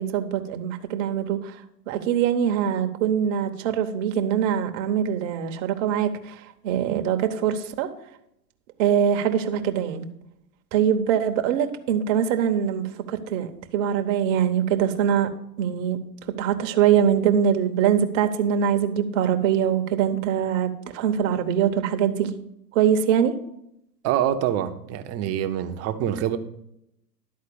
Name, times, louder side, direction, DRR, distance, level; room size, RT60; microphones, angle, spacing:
voice 1, 0.0-1.6 1.9-7.9 8.8-10.1 10.7-15.3 15.6-16.0 16.4-22.3 22.7-23.3, right 9 dB, 50° right, 6 dB, 1.1 m, -23 dB
voice 2, 24.0-26.4, right 10 dB, 30° right, 7 dB, 0.9 m, -25 dB
11.5 x 4.3 x 6.9 m, 0.79 s
hypercardioid pair, 120°, 50 cm